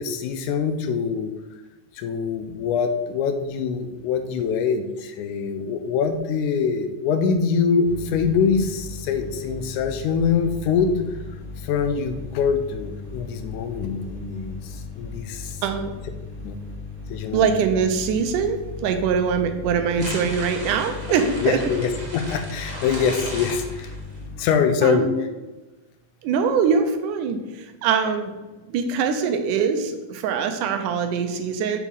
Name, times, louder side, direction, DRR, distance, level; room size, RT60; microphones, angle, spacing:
voice 1, 0.0-1.3 2.0-10.9 11.6-15.6 16.4-16.6 17.1-17.5 20.0-20.1 21.4-23.9 24.4-25.1, left 6 dB, 80° left, 7 dB, 2.1 m, -24 dB
sound 1, 7.8-24.4, left 4 dB, 35° left, 2.8 m, -37 dB
voice 2, 17.3-21.6 24.8-25.3 26.2-28.3 28.7-31.8, right 6 dB, 85° right, 7 dB, 2.2 m, -23 dB
sound 2, 20.0-24.2, right 1 dB, 30° right, 0.7 m, -36 dB
7.1 x 4.4 x 5.4 m, 1.1 s
omnidirectional pair, 3.6 m